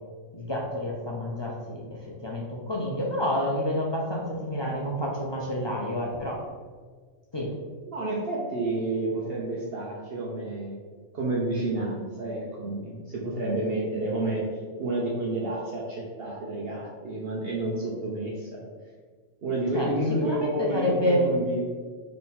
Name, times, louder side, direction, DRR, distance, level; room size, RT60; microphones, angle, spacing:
voice 1, 0.3-6.4 7.3-7.5 19.7-19.9 20.2-21.2, left 1 dB, 35° left, -3 dB, 0.4 m, -29 dB
voice 2, 7.9-10.8 11.1-14.4 14.8-18.6 19.4-21.6, right 2 dB, 55° right, -4 dB, 0.9 m, -30 dB
3.9 x 3.2 x 4.2 m, 1.5 s
omnidirectional pair, 1.3 m